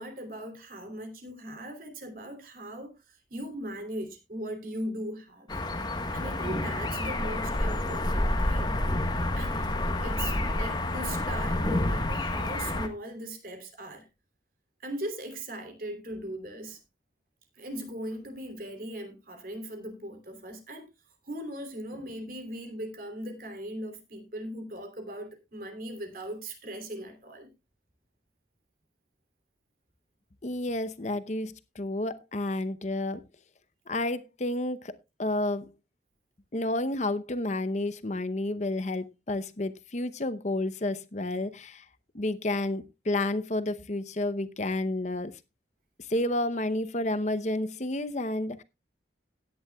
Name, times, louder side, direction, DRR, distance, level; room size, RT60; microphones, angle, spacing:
voice 1, 0.0-5.5 6.1-8.8 9.3-9.6 10.0-14.1 14.8-16.8 17.6-20.9 21.2-27.5, right 1 dB, 50° right, 3.1 m, -39 dB
sound 1, 5.5-12.9, left 1 dB, 25° left, 1.4 m, -29 dB
voice 2, 30.4-33.2 33.9-34.9 35.2-35.7 36.5-41.8 42.1-45.3 46.1-48.6, left 1 dB, 40° left, 0.8 m, -30 dB
16.5 x 10.5 x 2.3 m
head